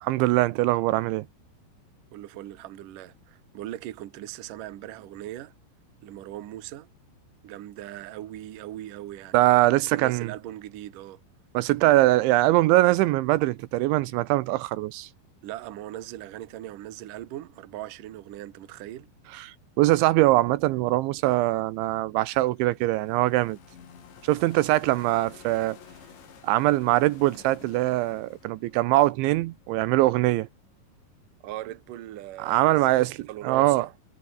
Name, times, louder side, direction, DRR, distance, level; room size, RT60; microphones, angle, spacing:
voice 1, 0.0-1.3 9.3-10.3 11.5-15.1 19.3-19.5 19.8-23.6 24.2-25.8 26.4-30.5 32.4-33.2 33.4-33.9, right 18 dB, 85° right, 3.0 m, -22 dB
voice 2, 2.1-5.5 6.0-6.9 7.4-9.4 9.8-11.2 15.4-19.1 31.4-33.9, right 14 dB, 60° right, 2.4 m, -39 dB
sound 1, 22.0-30.1, left 7 dB, 65° left, 6.2 m, -52 dB
omnidirectional pair, 5.6 m